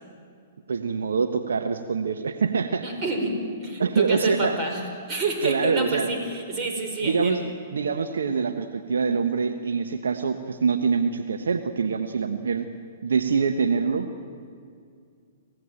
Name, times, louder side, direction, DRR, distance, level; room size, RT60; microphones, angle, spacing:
voice 1, 0.7-2.8 3.8-4.6 5.4-6.2 7.0-7.4 7.7-12.7 13.0-14.1, right 5 dB, 75° right, 7 dB, 1.2 m, -25 dB
voice 2, 2.8-7.4, right 2 dB, 30° right, 3 dB, 5.5 m, -28 dB
27.5 x 16.0 x 9.1 m, 2.3 s
hypercardioid pair, 120°, 0 cm